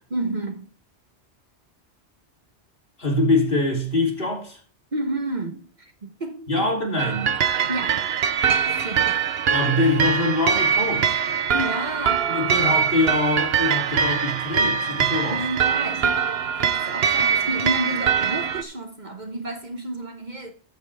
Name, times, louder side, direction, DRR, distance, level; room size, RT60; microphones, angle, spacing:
voice 1, 0.1-0.7 4.9-6.7 7.7-8.1 8.5-9.2 9.8-9.9 11.5-12.3 15.3-16.3 16.6-20.5, right 1 dB, 40° right, 1.2 m, -31 dB
voice 2, 3.0-4.6 6.5-7.4 9.5-11.1 12.3-15.4, left 2 dB, 50° left, 3.6 m, -24 dB
sound 1, 7.0-18.6, right 7 dB, 60° right, 1.0 m, -23 dB
13.5 x 8.9 x 3.5 m
omnidirectional pair, 1.2 m